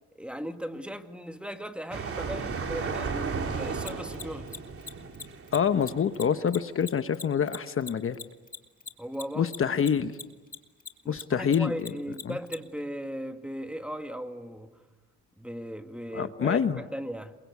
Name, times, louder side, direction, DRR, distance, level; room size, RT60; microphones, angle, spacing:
voice 1, 0.2-4.6 9.0-9.7 11.0-14.8 15.4-17.4, equal, 5° right, 2.1 m, -37 dB
sound 1, 1.9-6.3, right 5 dB, 45° right, 3.6 m, -34 dB
Mechanisms, 3.8-10.6 10.8-12.6, left 4 dB, 30° left, 2.5 m, -39 dB
voice 2, 5.5-8.2 9.4-10.1 11.1-11.9 12.2-12.4 16.1-16.8, left 7 dB, 45° left, 1.1 m, -26 dB
28.0 x 24.0 x 8.4 m
cardioid pair, 90°, 30 cm